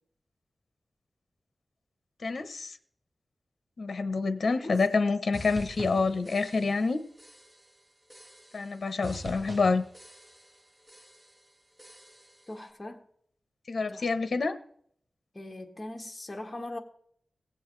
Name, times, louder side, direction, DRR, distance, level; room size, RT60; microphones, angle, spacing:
voice 1, 2.2-2.8 3.8-7.0 8.5-9.8 13.7-14.6, left 4 dB, 70° left, 10 dB, 0.8 m, -27 dB
sound 1, 5.3-6.9 7.2-7.7 8.1-8.7 9.0-10.6 10.9-11.4 11.8-12.4, right 1 dB, 15° right, 1.6 m, -45 dB
voice 2, 12.5-13.0 13.9-14.1 15.3-16.8, left 1 dB, 25° left, 2 dB, 1.7 m, -40 dB
18.0 x 7.9 x 3.2 m, 0.64 s
wide cardioid pair, 85°, 0 cm